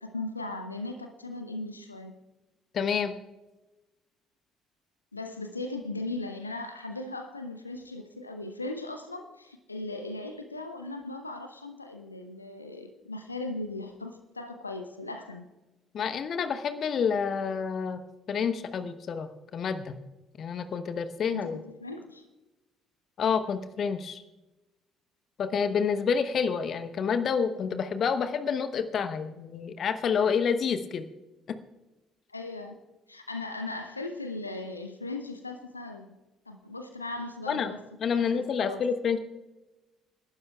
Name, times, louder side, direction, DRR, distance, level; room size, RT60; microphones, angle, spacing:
voice 1, 0.0-2.2 5.1-15.5 21.3-22.2 32.3-32.8 33.1-36.1 36.5-37.8 38.1-38.8, left 2 dB, 85° left, 6 dB, 0.7 m, -38 dB
voice 2, 2.7-3.1 15.9-18.0 18.3-19.9 20.4-21.6 23.2-24.2 25.4-31.0 31.5-31.6 37.5-37.7 38.0-39.2, left 6 dB, 45° left, 10 dB, 1.0 m, -28 dB
29.5 x 12.0 x 2.3 m, 1.1 s
figure-of-eight pair, 50°, 0 cm